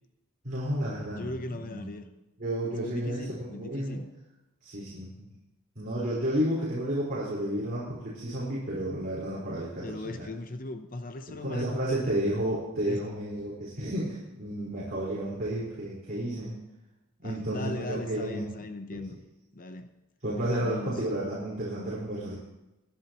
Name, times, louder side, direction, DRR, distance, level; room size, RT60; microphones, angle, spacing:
voice 1, 0.4-1.9 2.4-4.0 4.6-5.3 5.7-10.2 11.4-16.5 17.2-18.4 18.9-19.0 20.2-22.3, right 1 dB, 40° right, -8 dB, 4.6 m, -32 dB
voice 2, 1.2-2.1 2.8-4.1 9.8-12.2 12.8-13.1 17.2-19.2 19.5-19.9 20.6-21.0, left 2 dB, 40° left, 8 dB, 0.7 m, -39 dB
23.0 x 11.0 x 3.0 m, 0.99 s
head